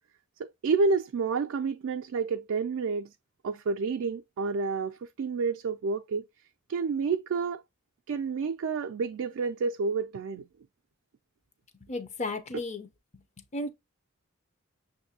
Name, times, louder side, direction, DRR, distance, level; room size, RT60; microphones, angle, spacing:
voice 1, 0.4-3.1 3.4-6.2 6.7-7.6 8.1-10.5, right 4 dB, 75° right, 0.3 m, -29 dB
voice 2, 11.9-12.9 13.1-13.2 13.5-13.7, left 2 dB, 35° left, 0.6 m, -34 dB
6.4 x 2.6 x 2.7 m
head